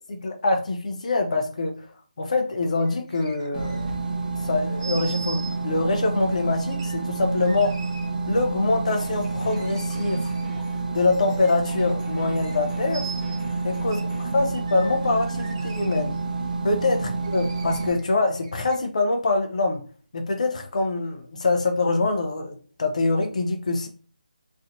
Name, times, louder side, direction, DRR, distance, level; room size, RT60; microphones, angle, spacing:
voice 1, 0.2-1.7 2.2-3.9 4.4-7.7 8.3-10.3 10.9-13.1 13.6-14.0 14.3-16.2 16.6-19.8 20.1-23.9, left 3 dB, 50° left, 5 dB, 0.7 m, -24 dB
sound 1, 2.8-4.0 4.8-5.6 6.7-8.1 9.5-10.6 11.0-11.9 12.4-12.6 12.9-13.4 13.9-14.0 14.5-16.2 17.2-19.1 19.7-19.8, right 5 dB, 30° right, 0.5 m, -41 dB
sound 2, 3.5-17.9, right 3 dB, 60° right, 1.0 m, -29 dB
sound 3, 8.9-14.4, equal, 10° left, 0.7 m, -45 dB
3.2 x 2.8 x 2.6 m, 0.40 s
figure-of-eight pair, 165°, 5 cm